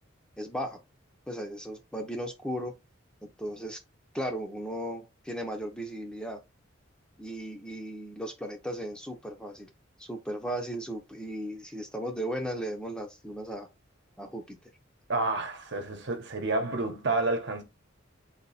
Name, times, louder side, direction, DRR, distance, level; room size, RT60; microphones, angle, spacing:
voice 1, 0.4-0.8 1.3-2.7 3.2-3.8 4.1-6.4 7.2-9.7 10.0-13.7 14.2-14.6, equal, 5° left, 0.8 m, -36 dB
voice 2, 15.1-17.6, right 2 dB, 60° right, 1.1 m, -29 dB
4.1 x 2.9 x 4.2 m
head